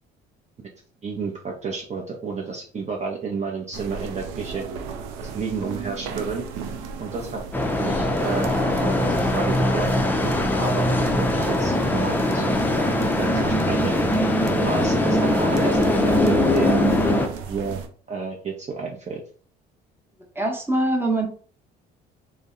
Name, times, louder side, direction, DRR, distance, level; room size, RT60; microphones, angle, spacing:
voice 1, 1.0-4.7 5.3-6.4 7.0-7.4 7.8-8.5 8.8-9.9 10.6-12.6 12.9-13.9 14.6-16.8 17.5-17.8 18.1-19.2, right 4 dB, 35° right, -1 dB, 0.7 m, -31 dB
sound 1, 3.7-17.9, right 6 dB, 80° right, 0.5 m, -34 dB
sound 2, 7.5-17.3, left 1 dB, 10° left, 0.5 m, -21 dB
voice 2, 20.3-21.3, right 1 dB, 10° right, 1 dB, 0.9 m, -23 dB
2.6 x 2.1 x 3.7 m, 0.42 s
supercardioid pair, 70°, 21 cm